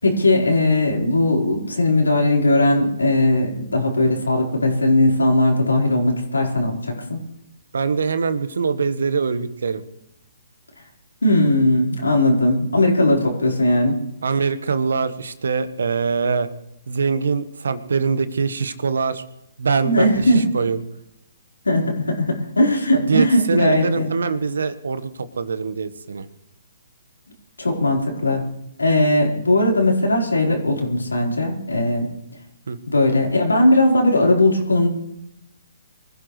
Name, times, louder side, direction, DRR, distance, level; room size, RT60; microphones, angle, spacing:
voice 1, 0.0-7.2 11.2-14.0 19.8-20.4 21.6-24.1 27.6-28.5 28.8-32.1 32.8-34.9, left 1 dB, 85° left, -1 dB, 4.3 m, -18 dB
voice 2, 7.7-9.8 14.2-16.5 16.9-19.2 19.6-20.8 23.0-26.3 32.7-32.8, right 5 dB, 70° right, 12 dB, 1.3 m, -23 dB
24.0 x 15.0 x 3.2 m, 0.83 s
figure-of-eight pair, 130°, 0 cm